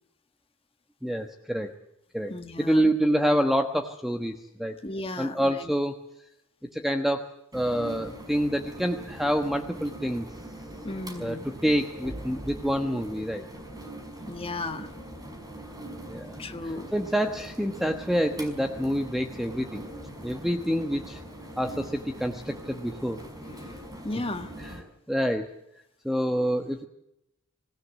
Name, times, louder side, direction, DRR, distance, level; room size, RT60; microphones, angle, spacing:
voice 1, 1.0-1.7 2.1-2.3 2.6-4.8 5.2-6.0 6.7-7.3 7.5-10.3 11.2-11.4 11.6-13.4 16.1-16.4 16.9-19.8 20.2-21.2 21.6-23.2 24.6-24.7 25.1-25.5 26.0-26.9, equal, ahead, 5 dB, 1.2 m, -27 dB
voice 2, 2.3-2.9 4.8-5.7 10.8-11.5 14.3-14.9 16.4-16.9 23.7-24.5, left 2 dB, 25° left, 6 dB, 1.6 m, -35 dB
sound 1, 7.5-24.8, right 1 dB, 20° right, 5.5 m, -42 dB
25.5 x 16.5 x 8.1 m, 0.82 s
head